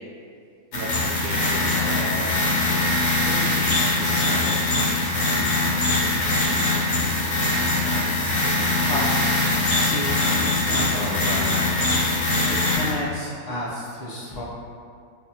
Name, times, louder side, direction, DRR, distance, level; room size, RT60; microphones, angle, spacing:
sound 1, 0.7-12.9, left 2 dB, 65° left, 1.2 m, -22 dB
voice 1, 1.2-2.4 3.1-4.9, right 3 dB, 75° right, -3 dB, 1.2 m, -36 dB
voice 2, 8.9-9.2 9.7-10.2 10.5-11.6 12.6-14.4, left 1 dB, 85° left, -8 dB, 0.3 m, -31 dB
5.6 x 2.6 x 2.7 m, 2.2 s
omnidirectional pair, 1.6 m